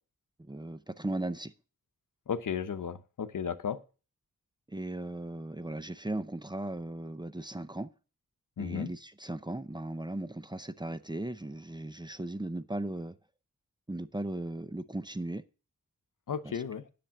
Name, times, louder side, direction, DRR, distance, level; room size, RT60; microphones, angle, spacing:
voice 1, 0.4-1.5 4.7-7.9 8.6-13.1 13.9-15.4 16.4-16.6, right 1 dB, 15° right, 0.6 m, -37 dB
voice 2, 2.3-3.8 8.6-8.9 16.3-16.8, left 7 dB, 75° left, 0.8 m, -34 dB
10.0 x 6.8 x 5.8 m
wide cardioid pair, 115°, 32 cm